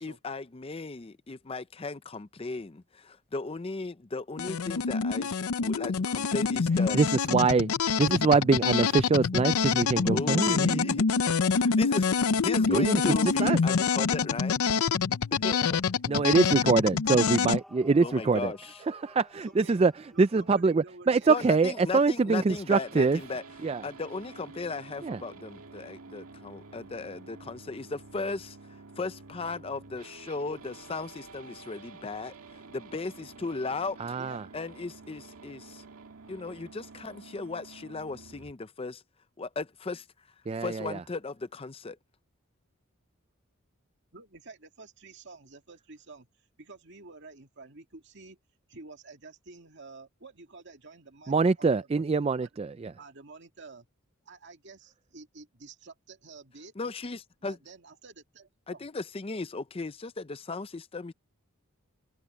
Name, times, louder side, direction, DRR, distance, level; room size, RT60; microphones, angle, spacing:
voice 1, 0.0-7.0 10.0-11.1 11.6-14.6 15.3-15.8 18.0-18.8 21.3-23.4 23.8-28.6 29.0-34.0 34.5-35.8 36.3-39.0 39.4-40.1 40.6-42.0 56.8-57.6 58.7-61.1, left 3 dB, 25° left, 0.5 m, -36 dB
sound 1, 4.4-17.6, left 5 dB, 90° left, 0.6 m, -26 dB
voice 2, 6.9-7.7 8.0-10.9 12.7-13.6 16.1-18.5 18.9-23.2 23.6-23.8 25.0-25.2 34.0-34.5 40.5-41.0 51.3-52.9, right 4 dB, 30° right, 0.3 m, -24 dB
sound 2, 17.0-20.9 22.1-22.5 24.1-24.3 28.1-28.4 29.8-29.9, equal, ahead, 3.5 m, -55 dB
voice 3, 19.3-19.8 20.1-21.5 22.3-22.4 34.2-34.4 44.1-46.3 46.6-48.4 48.7-52.0 52.4-52.5 53.0-53.9 54.2-56.7 57.4-58.9, right 3 dB, 55° right, 2.3 m, -49 dB
sound 3, 22.5-38.5, right 3 dB, 85° right, 2.0 m, -49 dB
head